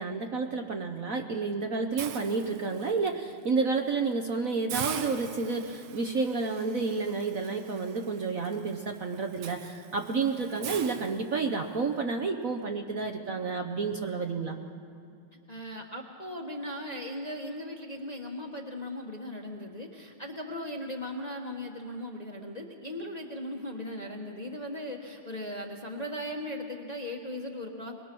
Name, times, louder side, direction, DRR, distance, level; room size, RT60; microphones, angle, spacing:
voice 1, 0.0-14.6 22.9-23.0, right 4 dB, 50° right, 4 dB, 1.1 m, -30 dB
Hiss, 2.0-3.1 3.6-3.8 4.1-4.2 4.7-11.8, right 8 dB, 85° right, 1.9 m, -42 dB
voice 2, 15.5-27.9, left 1 dB, 25° left, 1 dB, 1.1 m, -38 dB
22.5 x 21.0 x 6.1 m, 2.4 s
omnidirectional pair, 2.3 m